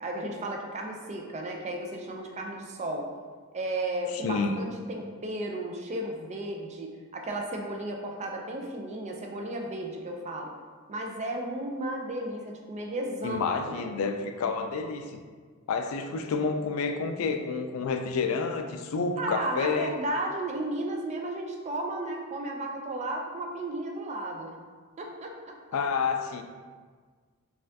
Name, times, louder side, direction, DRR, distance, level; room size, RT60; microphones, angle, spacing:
voice 1, 0.0-3.1 3.5-10.5 10.9-13.9 19.2-24.5 25.0-25.6, right 1 dB, 30° right, 1 dB, 0.4 m, -34 dB
voice 2, 4.1-4.6 13.2-15.2 15.7-19.9 25.7-26.4, left 4 dB, 70° left, 6 dB, 0.3 m, -29 dB
4.1 x 2.4 x 2.7 m, 1.5 s
head